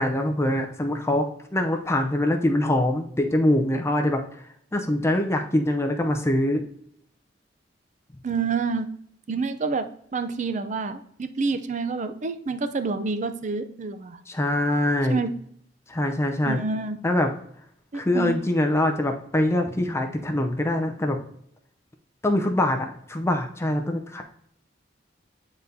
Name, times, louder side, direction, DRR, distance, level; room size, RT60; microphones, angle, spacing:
voice 1, 0.0-4.2 4.7-6.6 14.3-15.2 15.9-16.6 17.0-17.3 17.9-21.2 22.2-24.2, left 1 dB, 15° left, 4 dB, 0.6 m, -24 dB
voice 2, 8.2-8.9 9.3-14.2 15.1-15.3 16.5-17.0 17.9-18.4, right 4 dB, 40° right, 9 dB, 0.5 m, -28 dB
9.4 x 4.0 x 2.7 m, 0.68 s
head